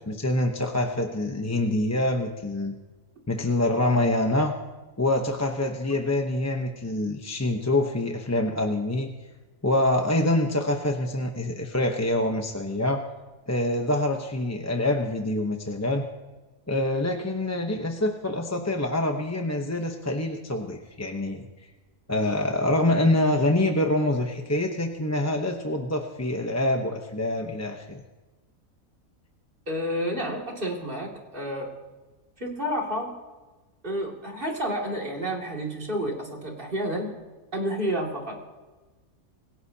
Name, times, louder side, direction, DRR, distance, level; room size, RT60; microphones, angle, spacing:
voice 1, 0.0-2.7 3.3-4.5 5.0-9.1 9.6-13.0 13.5-16.1 16.7-21.5 22.1-28.0, left 1 dB, 15° left, 3 dB, 0.8 m, -25 dB
voice 2, 29.7-31.7 32.4-33.1 33.8-37.1 37.5-38.4, equal, 35° right, -1 dB, 2.7 m, -30 dB
26.0 x 16.5 x 2.9 m, 1.2 s
omnidirectional pair, 1.5 m